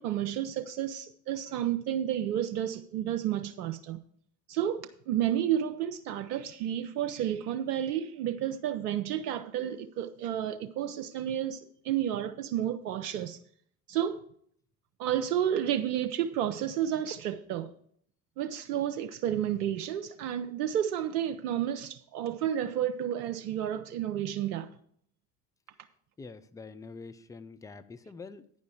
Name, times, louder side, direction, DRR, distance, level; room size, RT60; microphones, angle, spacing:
voice 1, 0.0-4.0 4.5-13.4 13.9-14.2 15.0-17.7 18.4-24.7, right 10 dB, 70° right, 0.7 m, -31 dB
voice 2, 26.2-28.6, left 4 dB, 10° left, 0.4 m, -46 dB
9.8 x 5.2 x 7.0 m
figure-of-eight pair, 65°, 49 cm